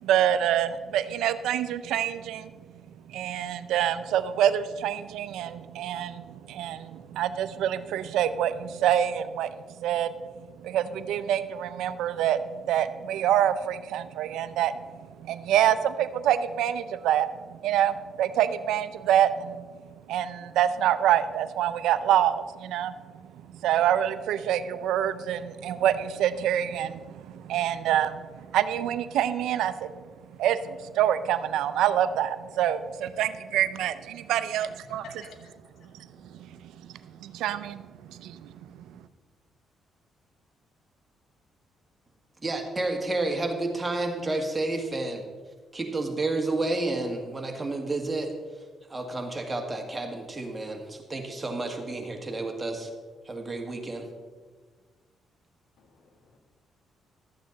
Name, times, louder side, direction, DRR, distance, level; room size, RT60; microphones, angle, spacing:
voice 1, 0.0-2.5 3.1-9.5 9.8-10.1 10.6-14.8 15.2-19.7 20.1-22.9 23.6-29.9 30.4-35.0 36.4-36.5 37.2-37.9 38.1-38.4, right 10 dB, 85° right, 13 dB, 0.5 m, -26 dB
voice 2, 35.0-35.5 35.8-35.9 55.8-56.4, left 3 dB, 70° left, 4 dB, 1.6 m, -48 dB
voice 3, 42.4-45.2 45.7-48.3 48.9-52.9 53.2-54.1, right 2 dB, 20° right, 2 dB, 1.8 m, -30 dB
12.5 x 8.6 x 4.0 m, 1.5 s
cardioid pair, 90°, 0 cm